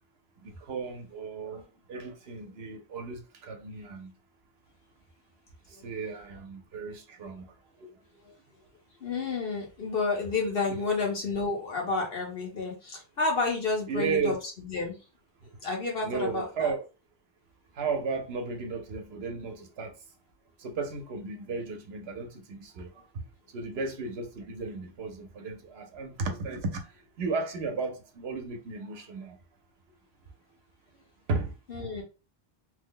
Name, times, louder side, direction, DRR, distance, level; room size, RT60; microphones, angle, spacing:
voice 1, 0.4-4.1 5.7-7.9 10.7-10.8 13.9-14.4 16.0-16.8 17.7-20.0 20.6-23.3 23.5-29.4 31.3-31.9, right 4 dB, 80° right, 1.0 m, -35 dB
voice 2, 9.0-15.0 15.6-16.7 31.7-32.0, left 3 dB, 70° left, 1.4 m, -30 dB
3.1 x 2.1 x 3.7 m
omnidirectional pair, 1.0 m